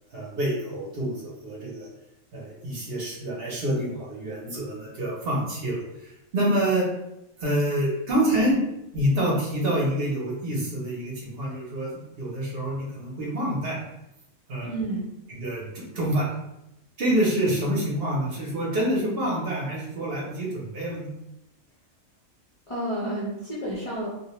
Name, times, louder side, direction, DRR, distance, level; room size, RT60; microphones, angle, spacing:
voice 1, 0.1-1.9 2.3-6.9 7.4-8.6 8.9-13.8 14.5-14.7 15.3-16.3 17.0-21.1, right 1 dB, 55° right, -4 dB, 0.8 m, -27 dB
voice 2, 14.6-15.1 22.7-24.1, right 1 dB, 50° left, -7 dB, 0.4 m, -30 dB
2.4 x 2.1 x 2.9 m, 0.87 s
omnidirectional pair, 1.4 m